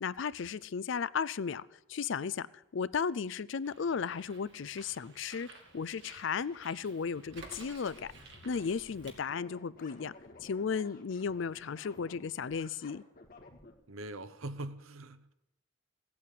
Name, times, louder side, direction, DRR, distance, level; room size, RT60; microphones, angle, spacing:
voice 1, 0.0-2.5 2.7-5.5 5.7-8.1 8.4-10.1 10.4-13.0, left 6 dB, 60° left, 0.4 m, -35 dB
Bird, 3.6-9.2, right 3 dB, 60° right, 2.4 m, -54 dB
sound 1, 7.8-13.7, left 2 dB, 45° left, 1.9 m, -55 dB
voice 2, 13.9-15.3, right 2 dB, 80° right, 0.9 m, -42 dB
16.0 x 8.6 x 8.5 m
head